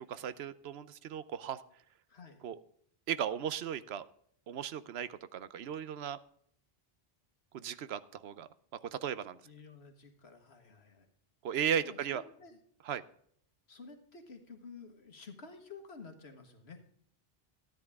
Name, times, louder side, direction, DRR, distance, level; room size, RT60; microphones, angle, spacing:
voice 1, 0.0-1.6 2.4-2.6 3.1-4.1 4.5-6.2 7.5-8.5 8.9-9.4 11.4-12.2 12.9-13.0, right 9 dB, 85° right, 15 dB, 0.9 m, -36 dB
voice 2, 2.1-2.4 9.4-11.1 11.8-12.6 13.7-16.8, left 4 dB, 90° left, 6 dB, 1.8 m, -51 dB
13.5 x 10.0 x 3.5 m, 0.65 s
omnidirectional pair, 1.0 m